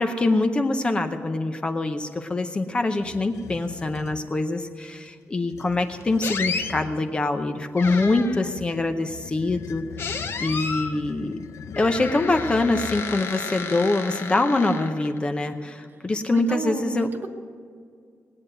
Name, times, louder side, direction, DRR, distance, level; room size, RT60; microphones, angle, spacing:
voice 1, 0.0-9.8 10.4-11.4 11.8-17.1, left 2 dB, 20° left, 7 dB, 0.7 m, -24 dB
sound 1, 2.9-4.2 5.4-7.0 7.8-13.3, left 7 dB, 85° left, 0.7 m, -42 dB
sound 2, 6.2-6.7 7.8-8.5 10.0-11.0 11.7-15.2, left 4 dB, 50° left, 1.0 m, -32 dB
voice 2, 16.3-17.3, right 4 dB, 40° right, 5 dB, 1.2 m, -32 dB
19.5 x 9.2 x 7.9 m, 2.2 s
wide cardioid pair, 180°, 5 cm